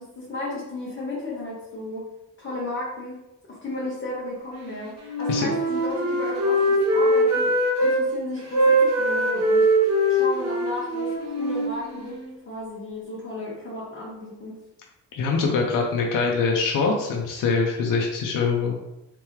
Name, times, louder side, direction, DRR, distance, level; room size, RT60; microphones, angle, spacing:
voice 1, 0.0-2.0 2.4-3.2 3.5-9.7 10.1-12.2 12.4-14.6, left 2 dB, 40° left, -7 dB, 1.1 m, -34 dB
Wind instrument woodwind instrument, 5.1-8.0 8.5-12.3, right 1 dB, 50° right, 1.0 m, -22 dB
voice 2, 15.1-18.8, left 4 dB, 70° left, 0 dB, 0.6 m, -23 dB
3.4 x 3.1 x 3.1 m, 0.94 s
cardioid pair, 100°, 33 cm